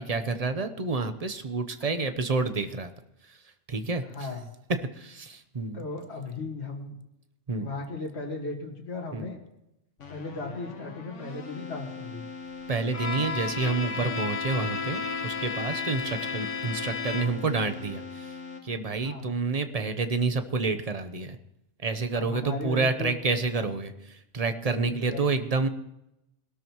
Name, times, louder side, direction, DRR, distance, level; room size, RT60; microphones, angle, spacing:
voice 1, 0.0-2.9 3.2-3.4 3.7-4.3 4.9-5.8 7.5-7.7 9.1-9.3 12.7-21.4 21.8-25.7, right 4 dB, 35° right, 9 dB, 0.9 m, -29 dB
voice 2, 5.7-7.0 7.6-9.4 10.1-12.2 19.0-19.3 22.2-23.2 24.8-25.2, left 3 dB, 65° left, 0 dB, 2.2 m, -36 dB
Keyboard (musical), 10.0-19.0, left 4 dB, 80° left, 1.8 m, -42 dB
Bowed string instrument, 12.9-17.6, left 5 dB, 35° left, 0.8 m, -33 dB
20.5 x 12.5 x 3.1 m, 0.88 s
omnidirectional pair, 1.2 m